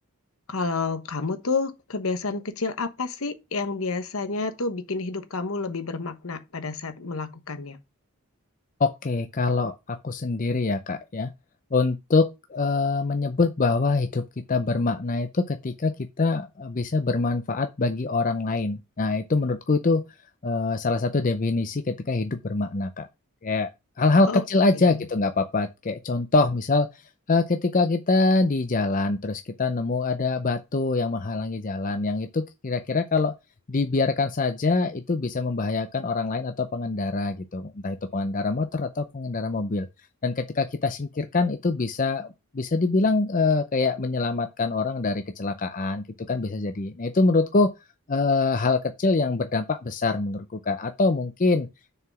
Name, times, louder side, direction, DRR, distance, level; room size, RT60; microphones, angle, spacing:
voice 1, 0.5-7.8 24.3-24.4 24.7-25.1, left 3 dB, 70° left, 1.1 m, -30 dB
voice 2, 8.8-11.3 11.7-14.2 14.5-20.0 20.4-23.1 23.4-23.7 24.0-26.9 27.3-33.3 33.7-39.9 40.2-42.3 42.5-47.7 48.1-51.7, left 3 dB, 35° left, 0.6 m, -24 dB
6.5 x 4.8 x 5.9 m
head